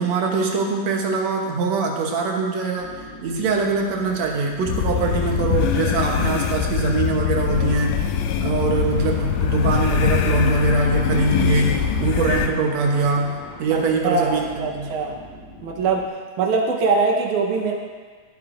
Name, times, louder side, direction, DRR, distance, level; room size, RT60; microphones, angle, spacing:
voice 1, 0.0-2.9 3.2-8.0 8.4-14.9, right 4 dB, 70° right, 1 dB, 2.1 m, -23 dB
sound 1, 2.8-16.1, left 1 dB, 40° left, 1.1 m, -43 dB
sound 2, 4.7-12.5, left 8 dB, 80° left, 1.7 m, -22 dB
sound 3, 8.7-13.6, equal, 5° left, 1.6 m, -42 dB
voice 2, 13.7-15.2 15.6-16.1 16.4-17.7, right 4 dB, 90° right, 1 dB, 2.5 m, -22 dB
15.5 x 8.8 x 2.6 m, 1.5 s
omnidirectional pair, 3.4 m